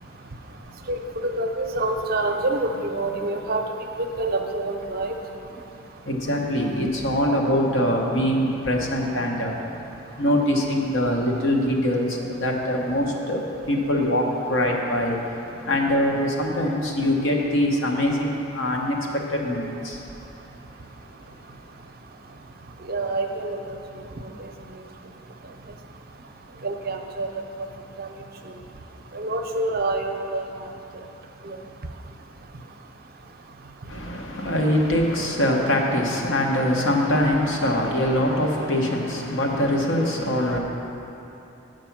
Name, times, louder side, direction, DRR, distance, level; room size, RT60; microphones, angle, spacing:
voice 1, 0.9-3.6 4.2-5.1 22.9-23.8 26.6-27.3 28.0-28.1 29.1-30.4 31.4-31.6, right 2 dB, 50° right, 4 dB, 0.6 m, -26 dB
voice 2, 6.1-9.6 10.2-15.2 15.6-20.1 33.9-40.6, left 1 dB, 85° left, 0 dB, 1.0 m, -23 dB
8.1 x 5.1 x 5.9 m, 3.0 s
head